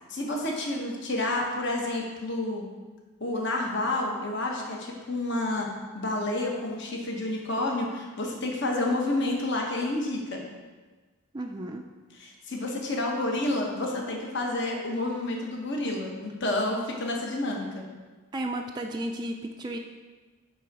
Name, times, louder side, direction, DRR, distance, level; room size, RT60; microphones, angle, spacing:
voice 1, 0.1-2.7 3.2-5.7 5.9-10.4 12.1-17.8, left 2 dB, 55° left, 0 dB, 1.1 m, -29 dB
voice 2, 11.3-11.9 18.3-19.8, right 1 dB, 20° right, 2 dB, 0.3 m, -33 dB
8.8 x 3.8 x 4.7 m, 1.3 s
head